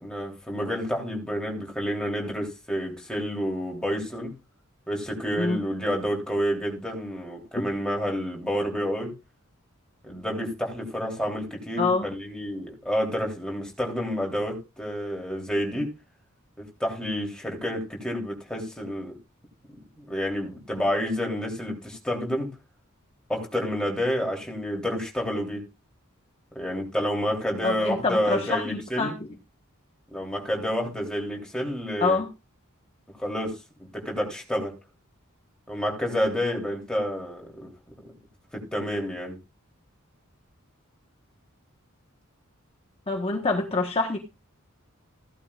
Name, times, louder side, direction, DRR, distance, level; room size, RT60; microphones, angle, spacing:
voice 1, 0.0-4.3 4.9-9.1 10.0-15.9 16.6-19.2 20.0-22.5 23.3-25.6 26.6-29.1 30.1-32.2 33.2-33.6 33.9-34.8 35.7-37.7 38.5-39.4, equal, 5° left, 3.5 m, -29 dB
voice 2, 11.8-12.1 27.6-29.1 32.0-32.3 43.1-44.2, left 3 dB, 30° left, 1.4 m, -25 dB
16.0 x 11.5 x 2.5 m
head